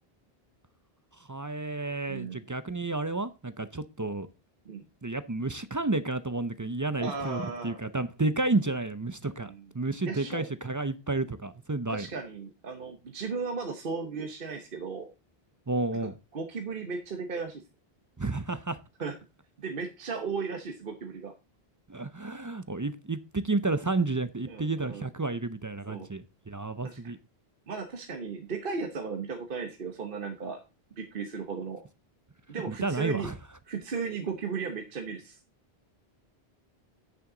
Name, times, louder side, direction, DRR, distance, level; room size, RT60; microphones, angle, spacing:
voice 1, 1.3-4.3 5.0-12.1 15.7-16.2 18.2-18.8 21.9-27.2 32.7-33.4, right 3 dB, 25° right, 0.4 m, -31 dB
voice 2, 2.1-2.4 4.6-4.8 7.0-7.8 9.4-9.6 10.0-10.5 11.9-15.1 16.3-17.6 19.0-19.1 19.6-21.3 24.5-25.0 25.9-26.1 26.8-27.0 27.7-30.6 31.0-31.8 32.5-33.3 33.7-35.4, right 5 dB, 60° right, 1.2 m, -35 dB
8.9 x 6.9 x 3.8 m
omnidirectional pair, 1.1 m